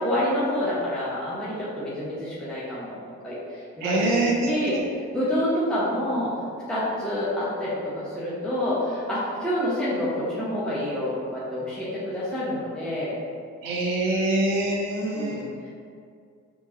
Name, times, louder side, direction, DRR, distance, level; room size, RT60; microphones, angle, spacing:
voice 1, 0.0-3.0 3.2-4.8 5.1-6.3 6.7-13.2 14.9-15.7, left 1 dB, ahead, -10 dB, 1.0 m, -28 dB
voice 2, 3.8-4.8 13.6-15.4, right 2 dB, 60° right, -1 dB, 0.7 m, -25 dB
3.7 x 2.4 x 3.9 m, 2.2 s
figure-of-eight pair, 40°, 38 cm